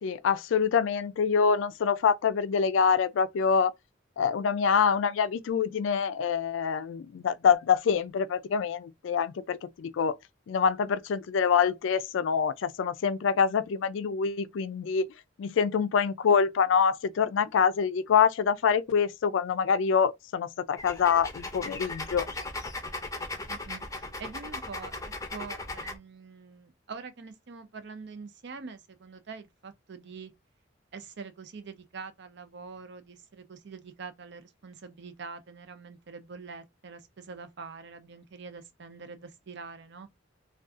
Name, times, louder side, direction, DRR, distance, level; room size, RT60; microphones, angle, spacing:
voice 1, 0.0-3.7 4.2-10.2 10.5-15.1 15.4-22.3, left 6 dB, 85° left, 0.4 m, -25 dB
sound 1, 20.8-26.0, left 2 dB, 15° left, 0.5 m, -37 dB
voice 2, 23.3-30.3 30.9-40.1, right 4 dB, 65° right, 0.6 m, -44 dB
2.5 x 2.3 x 3.5 m
head